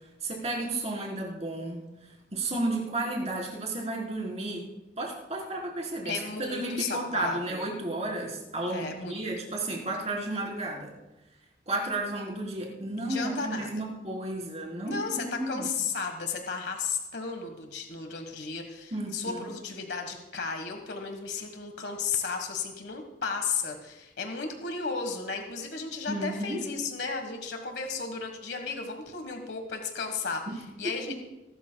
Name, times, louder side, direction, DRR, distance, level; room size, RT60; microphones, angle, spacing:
voice 1, 0.2-1.8 2.3-4.7 5.0-10.9 11.7-15.7 18.9-19.4 26.1-26.6 30.5-30.6 31.1-31.2, right 2 dB, 40° right, -2 dB, 3.8 m, -33 dB
voice 2, 6.0-7.6 8.7-9.1 13.0-13.8 14.8-31.1, left 5 dB, 70° left, 5 dB, 1.4 m, -34 dB
22.5 x 12.5 x 2.3 m, 1.0 s
head